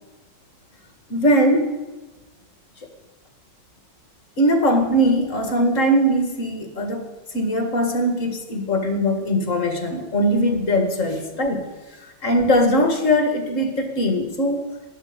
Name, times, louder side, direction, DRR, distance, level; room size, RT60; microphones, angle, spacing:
voice 1, 1.1-1.7 4.4-7.0 7.3-11.7 12.2-14.7, equal, 40° left, 5 dB, 2.0 m, -20 dB
17.0 x 12.0 x 5.1 m, 1.1 s
omnidirectional pair, 2.1 m